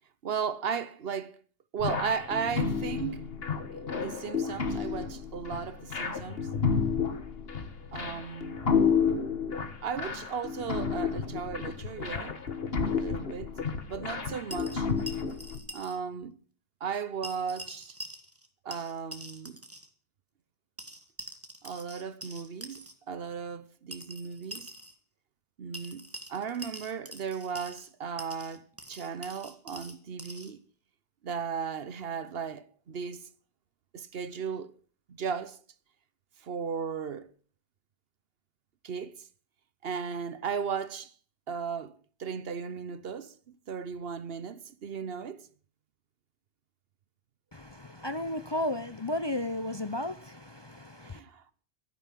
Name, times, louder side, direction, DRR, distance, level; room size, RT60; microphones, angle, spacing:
voice 1, 0.2-1.4 1.7-3.2 3.7-6.5 7.9-8.7 9.8-12.4 12.8-13.5 13.9-14.9 15.7-16.4 16.8-18.0 18.6-19.6 21.6-24.7 25.6-30.6 31.2-33.3 33.9-34.7 35.1-35.6 36.4-37.3 38.8-39.3 39.8-41.1 41.5-41.9 42.2-43.3 43.7-45.5 51.0-51.4, right 6 dB, 60° right, 1.0 m, -36 dB
sound 1, 1.8-15.6, left 6 dB, 60° left, 1.6 m, -31 dB
sound 2, 14.5-16.2 17.2-18.5 18.7-19.9 20.8-22.9 23.9-24.9 25.7-27.9 28.2-30.5, right 1 dB, 10° right, 1.6 m, -45 dB
voice 2, 47.5-51.2, left 1 dB, 25° left, 0.7 m, -34 dB
13.0 x 10.5 x 7.4 m
omnidirectional pair, 1.2 m